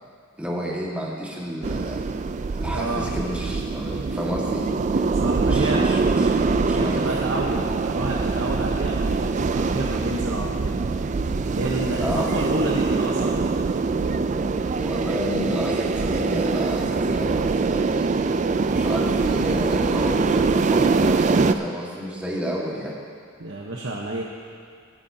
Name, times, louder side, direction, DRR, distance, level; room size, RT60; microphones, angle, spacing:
voice 1, 0.4-2.1 2.5-5.0 5.4-6.3 6.7-7.1 12.0-12.4 14.8-18.4 18.7-23.0, equal, 5° right, -4 dB, 1.7 m, -30 dB
sound 1, 1.6-21.5, right 4 dB, 35° right, 0.3 m, -23 dB
voice 2, 2.7-3.1 5.1-5.9 6.7-10.8 11.5-13.5 23.4-24.2, right 2 dB, 75° right, -3 dB, 1.0 m, -29 dB
24.5 x 8.8 x 2.8 m, 2.2 s
head